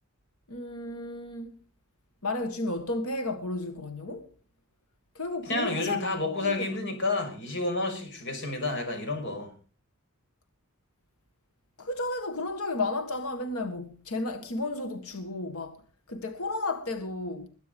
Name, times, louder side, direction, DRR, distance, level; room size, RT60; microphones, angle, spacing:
voice 1, 0.5-1.5 2.2-4.3 5.1-6.6 11.8-15.8 16.1-17.5, left 2 dB, 80° left, 1.6 m, -33 dB
voice 2, 5.5-9.5, left 2 dB, 55° left, 6.1 m, -30 dB
21.5 x 9.1 x 5.3 m
head